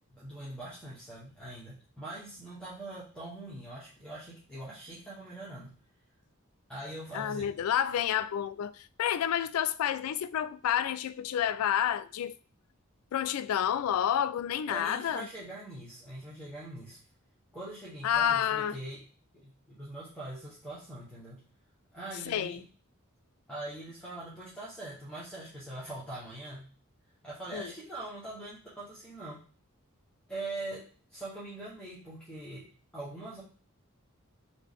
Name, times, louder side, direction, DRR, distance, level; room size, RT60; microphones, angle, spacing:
voice 1, 0.1-5.7 6.7-7.5 14.7-17.0 17.5-19.0 19.3-21.4 21.9-22.6 23.5-26.7 27.2-29.4 30.3-32.7 32.9-33.4, right 2 dB, 5° left, 1.0 m, -42 dB
voice 2, 7.1-12.3 13.1-15.3 18.0-18.8 22.3-22.6 27.5-27.7, left 10 dB, 85° left, 0.3 m, -29 dB
4.3 x 2.5 x 3.6 m
head